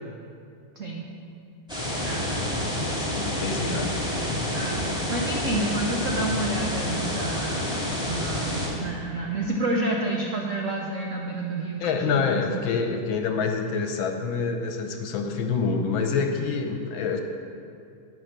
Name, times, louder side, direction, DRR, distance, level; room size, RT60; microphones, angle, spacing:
voice 1, 0.8-1.1 2.0-2.3 3.2-3.9 4.5-12.6, right 2 dB, 80° right, 0 dB, 0.7 m, -30 dB
sound 1, 1.7-8.7, left 1 dB, ahead, 1.9 m, -28 dB
voice 2, 3.0-3.9 11.8-17.2, left 5 dB, 70° left, 4 dB, 1.4 m, -27 dB
9.1 x 5.8 x 6.6 m, 2.4 s
omnidirectional pair, 2.4 m